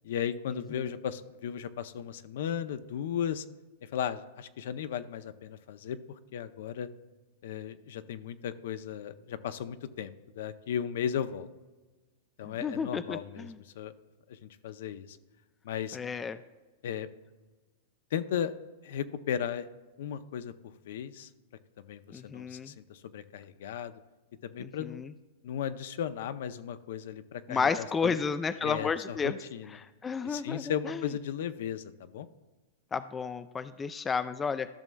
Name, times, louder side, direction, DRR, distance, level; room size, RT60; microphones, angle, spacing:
voice 1, 0.0-3.4 3.8-6.9 7.4-11.5 12.4-13.9 14.3-15.2 15.6-16.0 16.8-17.1 18.1-18.5 18.8-19.7 20.0-21.3 21.9-23.9 24.4-25.0 25.4-28.2 28.6-29.8 30.2-32.3, left 9 dB, 70° left, 12 dB, 0.5 m, -36 dB
voice 2, 12.5-13.5 15.9-16.4 22.1-22.7 24.6-25.1 27.5-29.4 30.0-31.0 32.9-34.7, left 5 dB, 15° left, 12 dB, 0.3 m, -32 dB
14.0 x 6.1 x 2.3 m, 1.2 s
hypercardioid pair, 135°, 0 cm